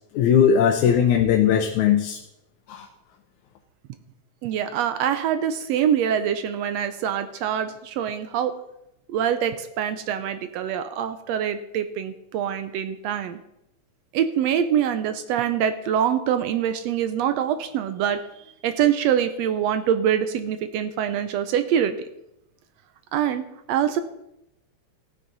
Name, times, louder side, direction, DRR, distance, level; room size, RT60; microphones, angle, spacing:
voice 1, 0.1-2.2 2.7-2.9, left 8 dB, 85° left, 3 dB, 2.3 m, -19 dB
voice 2, 4.4-8.5 9.1-13.4 14.1-18.2 18.6-22.0 23.1-24.0, right 9 dB, 75° right, 10 dB, 1.7 m, -24 dB
15.0 x 9.4 x 4.0 m, 0.83 s
omnidirectional pair, 3.4 m